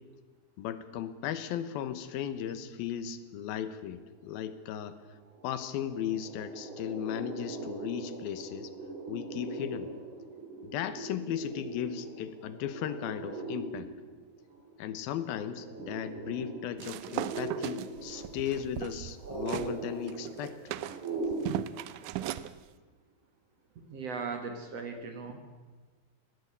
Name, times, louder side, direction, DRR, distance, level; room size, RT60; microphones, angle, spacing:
voice 1, 0.6-5.0 5.4-8.7 9.1-9.9 10.6-13.9 14.8-20.6, left 10 dB, 80° left, 13 dB, 2.9 m, -36 dB
sound 1, 4.9-5.0 5.3-21.5, right 3 dB, 35° right, 3.3 m, -41 dB
sound 2, 16.8-19.7 20.1-22.5, right 13 dB, 80° right, 1.8 m, -37 dB
voice 2, 23.9-25.4, right 5 dB, 55° right, 6 dB, 2.2 m, -38 dB
19.5 x 16.5 x 8.4 m, 1.3 s
omnidirectional pair, 4.3 m